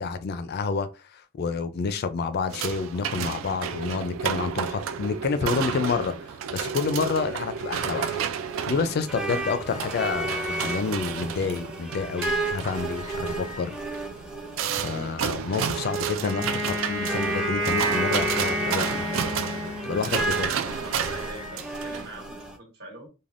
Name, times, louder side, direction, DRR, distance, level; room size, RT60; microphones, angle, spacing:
voice 1, 0.0-6.1 6.5-8.2 8.7-13.8 14.8-19.0 19.8-20.5, left 5 dB, 50° left, 0.3 m, -29 dB
sound 1, 2.5-22.1, right 7 dB, 75° right, 0.3 m, -32 dB
sound 2, 7.3-22.6, right 2 dB, 5° right, 0.5 m, -34 dB
Wind instrument woodwind instrument, 16.2-20.4, equal, 20° right, 0.9 m, -29 dB
voice 2, 19.9-23.1, right 2 dB, 55° right, 1.2 m, -42 dB
3.3 x 2.2 x 2.5 m
head